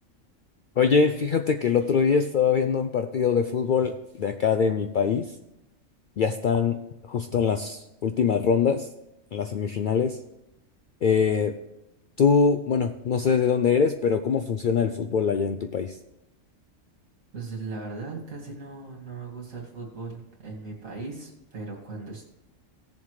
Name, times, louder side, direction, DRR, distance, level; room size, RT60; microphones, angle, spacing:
voice 1, 0.8-5.3 6.2-6.8 7.1-8.9 9.3-10.2 11.0-11.5 12.2-16.0, left 6 dB, 75° left, 7 dB, 0.4 m, -23 dB
voice 2, 17.3-22.2, right 3 dB, 80° right, -2 dB, 2.5 m, -38 dB
16.5 x 7.1 x 3.2 m, 0.91 s
omnidirectional pair, 1.4 m